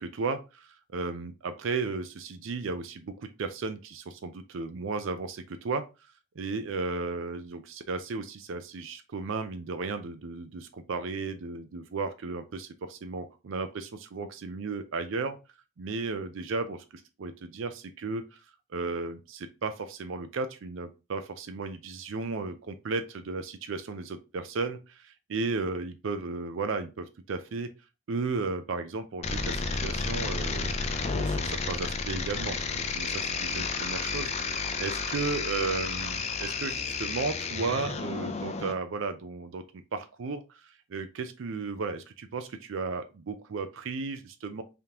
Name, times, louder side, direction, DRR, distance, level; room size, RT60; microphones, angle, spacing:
voice 1, 0.0-5.9 6.4-15.4 15.8-16.8 17.2-18.4 18.7-27.7 28.1-44.6, right 4 dB, 75° right, 9 dB, 0.5 m, -34 dB
sound 1, 29.2-38.7, left 4 dB, 30° left, 0.4 m, -31 dB
3.5 x 2.9 x 3.5 m, 0.29 s
head